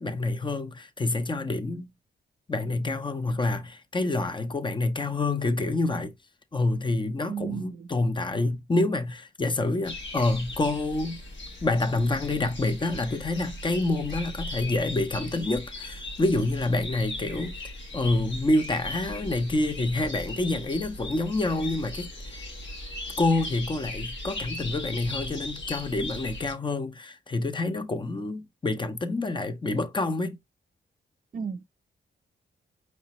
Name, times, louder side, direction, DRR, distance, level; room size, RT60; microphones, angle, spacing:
voice 1, 0.0-1.9 2.5-6.1 6.5-11.2 11.6-22.4 23.2-30.4, left 2 dB, 25° left, 0.6 m, -27 dB
voice 2, 7.3-7.9 31.3-31.6, right 7 dB, 45° right, 0.5 m, -34 dB
sound 1, 9.8-26.5, left 1 dB, 75° left, 1.4 m, -38 dB
4.9 x 3.3 x 2.9 m
cardioid pair, 80°, 19 cm